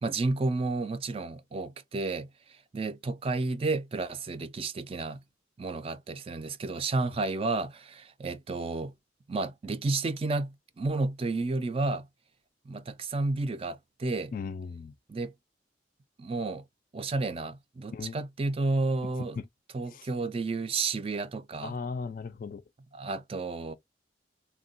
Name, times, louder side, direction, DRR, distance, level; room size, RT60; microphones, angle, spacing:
voice 1, 0.0-2.3 2.7-5.2 5.6-8.9 9.3-12.1 12.7-14.3 15.1-15.3 16.2-16.6 16.9-19.4 19.7-21.7 22.9-23.7, right 3 dB, 30° right, 0.3 m, -31 dB
voice 2, 14.3-15.0 17.9-18.2 19.0-19.5 19.8-20.1 21.6-22.6, left 5 dB, 50° left, 0.3 m, -37 dB
3.5 x 2.2 x 2.5 m
head